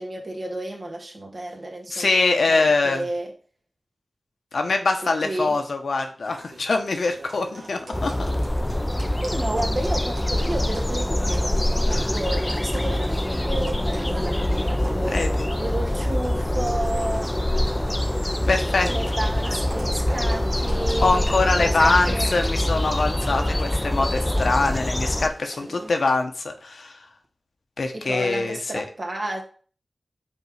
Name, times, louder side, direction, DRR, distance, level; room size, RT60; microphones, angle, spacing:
voice 1, 0.0-3.3 5.0-5.6 9.2-17.3 18.9-21.3 21.6-22.3 25.4-25.9 27.9-29.4, right 1 dB, 55° right, 1.8 m, -32 dB
voice 2, 1.9-3.0 4.5-8.1 11.9-12.1 15.1-15.5 18.5-18.9 21.0-27.0 27.8-28.8, left 3 dB, 80° left, 0.9 m, -23 dB
Livestock farm animals working animals, 6.2-26.2, right 2 dB, 80° right, 1.4 m, -43 dB
sound 1, 7.9-25.3, left 1 dB, 20° left, 0.5 m, -24 dB
5.2 x 3.8 x 4.9 m
cardioid pair, 50°, 0 cm